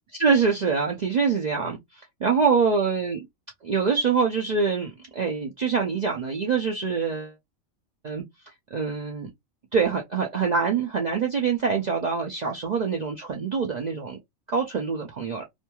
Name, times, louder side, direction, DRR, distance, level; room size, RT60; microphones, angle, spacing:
voice 1, 0.1-1.8 2.2-3.3 3.6-7.3 8.0-8.2 8.7-9.3 9.7-14.2 14.5-15.4, right 5 dB, 85° right, 0.3 m, -25 dB
2.5 x 2.3 x 2.9 m
omnidirectional pair, 1.4 m